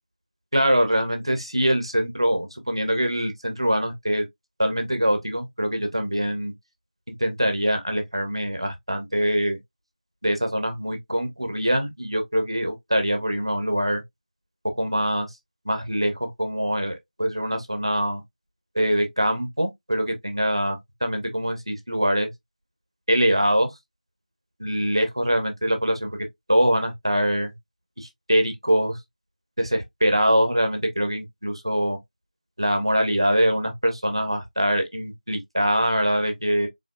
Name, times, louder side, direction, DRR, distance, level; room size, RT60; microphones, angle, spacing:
voice 1, 0.5-4.3 4.6-6.5 7.2-9.6 10.2-14.0 14.7-15.3 15.6-18.2 18.7-22.3 23.1-23.7 24.6-27.5 28.0-29.0 29.6-32.0 32.6-36.7, equal, 35° right, 0.8 m, -23 dB
3.9 x 3.1 x 2.4 m
figure-of-eight pair, 180°, 5 cm